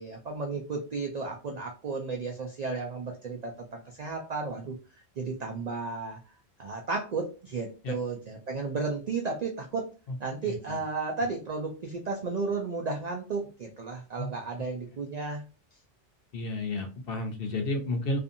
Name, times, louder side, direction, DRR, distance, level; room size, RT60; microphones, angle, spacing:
voice 1, 0.0-4.8 5.2-6.2 6.6-9.9 10.2-15.4, right 4 dB, 65° right, 2 dB, 0.4 m, -33 dB
voice 2, 10.4-10.8 14.2-14.3 16.3-18.2, left 2 dB, 60° left, 5 dB, 0.7 m, -32 dB
2.6 x 2.4 x 2.5 m, 0.34 s
omnidirectional pair, 1.2 m